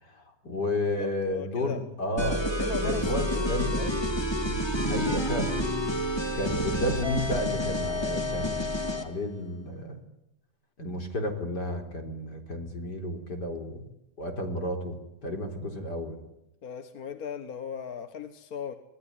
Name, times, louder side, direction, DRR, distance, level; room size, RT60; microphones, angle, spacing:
voice 1, 0.0-2.4 2.8-4.0 4.4-5.6 6.3-10.0 10.8-13.9 14.2-15.0 15.2-16.2, left 1 dB, 80° left, 4 dB, 4.7 m, -32 dB
voice 2, 1.0-1.8 2.6-4.0 16.6-18.8, left 6 dB, 60° left, 9 dB, 1.8 m, -37 dB
sound 1, 2.2-9.1, equal, 15° left, 2.5 m, -29 dB
26.0 x 18.5 x 9.8 m, 0.87 s
omnidirectional pair, 1.8 m